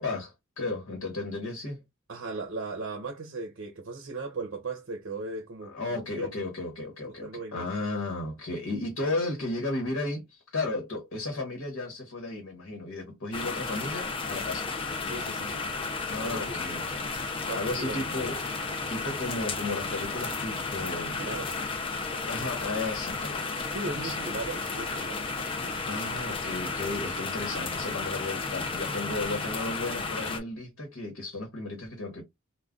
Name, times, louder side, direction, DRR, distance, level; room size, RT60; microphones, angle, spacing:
voice 1, 0.0-1.8 5.6-14.7 16.1-17.1 17.5-18.4 18.9-21.3 22.3-23.5 23.8-24.2 25.9-32.2, left 2 dB, 80° left, 1.0 m, -34 dB
voice 2, 2.1-6.3 7.2-7.6 15.0-15.5 16.2-16.6 17.5-18.0 21.2-21.5 23.7-25.2, right 3 dB, 65° right, 0.6 m, -37 dB
sound 1, 13.3-30.4, left 4 dB, 25° left, 0.5 m, -33 dB
2.3 x 2.2 x 3.6 m
head